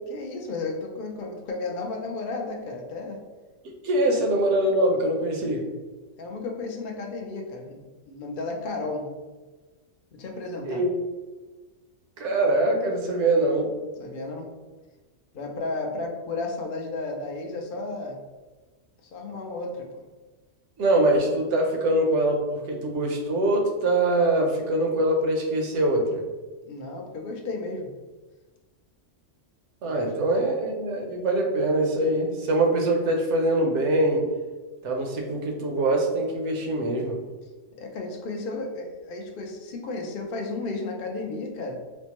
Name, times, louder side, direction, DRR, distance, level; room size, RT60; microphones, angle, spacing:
voice 1, 0.1-3.2 4.1-4.2 6.2-9.1 10.1-10.9 14.0-14.5 15.3-18.2 19.1-20.1 26.7-27.9 29.8-30.4 37.8-41.8, left 3 dB, 55° left, 2 dB, 0.6 m, -33 dB
voice 2, 3.8-5.6 10.7-10.9 12.2-13.7 20.8-26.2 29.8-34.2 34.8-37.2, right 1 dB, 70° right, 1 dB, 1.0 m, -23 dB
4.3 x 2.1 x 2.9 m, 1.2 s
omnidirectional pair, 1.3 m